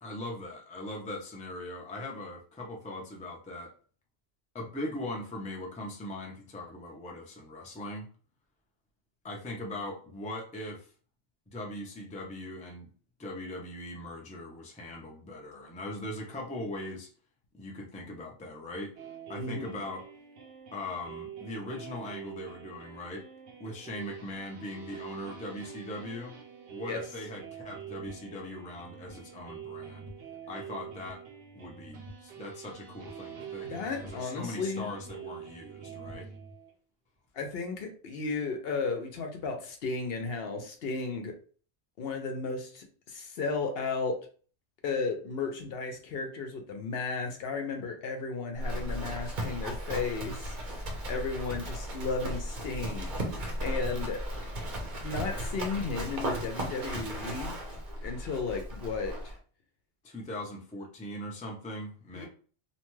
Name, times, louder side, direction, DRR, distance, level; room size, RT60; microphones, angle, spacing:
voice 1, 0.0-3.7 4.5-8.1 9.2-10.9 11.5-12.9 13.2-17.1 17.5-18.9 19.3-20.1 20.7-23.3 23.6-26.4 26.7-30.1 30.5-31.2 31.5-36.3 60.0-62.3, left 1 dB, 10° left, -1 dB, 0.4 m, -40 dB
sound 1, 19.0-36.7, right 9 dB, 75° right, 1.0 m, -46 dB
voice 2, 19.4-19.7 26.9-27.0 33.6-34.9 37.3-41.3 42.0-44.2 44.8-50.5 51.1-53.1 53.6-54.2 54.9-57.6 58.0-59.3 62.1-62.3, left 4 dB, 65° left, 4 dB, 0.8 m, -34 dB
sound 2, 27.4-36.5, right 3 dB, 35° left, 1.0 m, -52 dB
Livestock farm animals working animals, 48.6-59.4, equal, 50° right, 0.8 m, -36 dB
2.8 x 2.2 x 3.1 m, 0.41 s
omnidirectional pair, 1.2 m